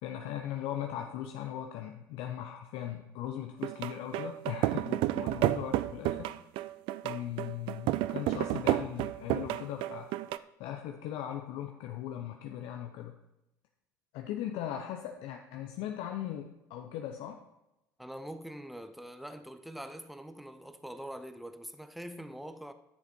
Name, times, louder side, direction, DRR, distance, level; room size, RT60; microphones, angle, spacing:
voice 1, 0.0-6.3 7.0-10.1 10.6-13.1 14.1-17.4, left 11 dB, 60° left, 0.8 m, -39 dB
sound 1, 3.6-10.4, right 15 dB, 60° right, 0.4 m, -31 dB
voice 2, 18.0-22.7, equal, ahead, 0.9 m, -44 dB
11.0 x 6.8 x 4.4 m
hypercardioid pair, 65°, 10 cm